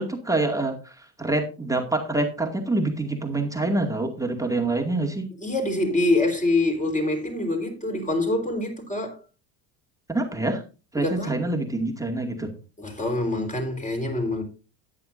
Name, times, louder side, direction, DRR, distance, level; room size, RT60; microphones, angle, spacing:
voice 1, 0.0-5.3 10.1-10.6 10.9-12.5, right 2 dB, 5° right, 2.2 m, -26 dB
voice 2, 5.4-9.2 11.0-11.4 12.8-14.4, left 2 dB, 15° left, 4.0 m, -25 dB
14.0 x 9.6 x 2.6 m
supercardioid pair, 90°, 50 cm